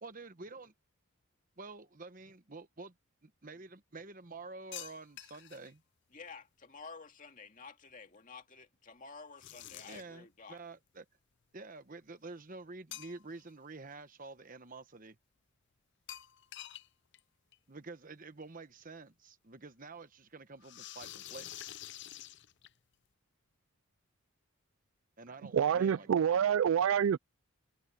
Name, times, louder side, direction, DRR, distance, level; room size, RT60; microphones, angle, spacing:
voice 1, 0.0-0.7 1.6-2.9 3.2-5.8 9.7-11.0 11.5-15.2 17.7-19.1 19.5-21.8 25.2-26.3, right 3 dB, 40° right, 1.1 m, -49 dB
sound 1, 4.7-5.7 9.4-10.2 12.9-13.5 13.9-14.0 16.1-16.9 17.1-17.2 17.5-17.6 18.8-18.9 20.6-22.9, left 13 dB, 50° left, 0.6 m, -47 dB
voice 2, 6.1-10.6, left 4 dB, 35° left, 2.2 m, -51 dB
voice 3, 25.5-27.2, right 8 dB, 65° right, 0.3 m, -27 dB
head